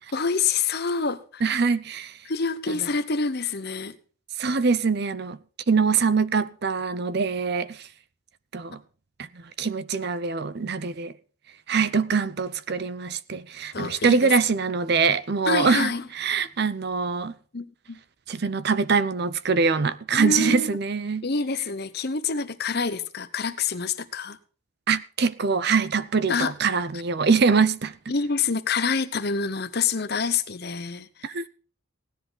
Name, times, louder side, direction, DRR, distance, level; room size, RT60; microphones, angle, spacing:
voice 1, 0.1-1.5 2.3-4.0 13.7-14.3 15.5-16.0 17.5-18.0 20.1-20.8 21.2-24.4 26.3-26.5 28.1-31.4, left 5 dB, 50° left, 0.9 m, -27 dB
voice 2, 1.4-2.2 4.4-5.4 5.7-7.9 8.5-8.8 9.2-11.1 11.7-15.9 16.1-17.3 18.3-21.3 24.9-27.9 31.2-31.5, right 5 dB, 50° right, 0.6 m, -23 dB
17.0 x 10.5 x 4.0 m
head